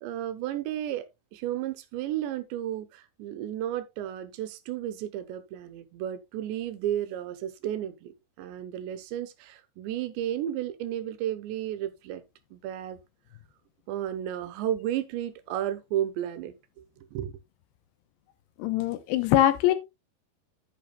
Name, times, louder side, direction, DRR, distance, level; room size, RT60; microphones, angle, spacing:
voice 1, 0.0-12.2 12.5-13.0 13.9-17.3, right 11 dB, 85° right, 3.2 m, -33 dB
voice 2, 18.6-19.7, left 13 dB, 75° left, 2.8 m, -22 dB
10.0 x 9.5 x 2.3 m
omnidirectional pair, 5.1 m